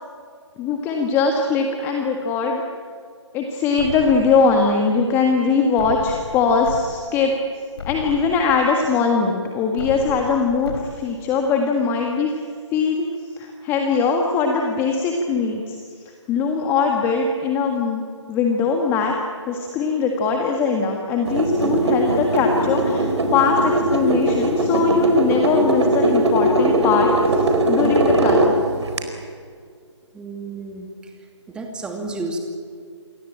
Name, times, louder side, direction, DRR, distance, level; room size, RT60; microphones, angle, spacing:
voice 1, 0.6-2.6 3.3-7.4 7.9-12.5 12.7-18.0 18.3-19.1 19.5-27.4 27.7-28.6, left 5 dB, 15° left, 2 dB, 1.8 m, -21 dB
sound 1, 3.8-4.8 5.8-6.8 7.3-7.4 7.8-8.8 9.8-10.8, left 4 dB, 55° left, 4.8 m, -34 dB
sound 2, 21.3-29.0, right 1 dB, 65° right, 4.5 m, -19 dB
voice 2, 30.1-30.9 31.5-32.4, right 3 dB, 5° right, 3 dB, 2.5 m, -31 dB
27.5 x 22.5 x 8.9 m, 2.1 s
figure-of-eight pair, 150°, 16 cm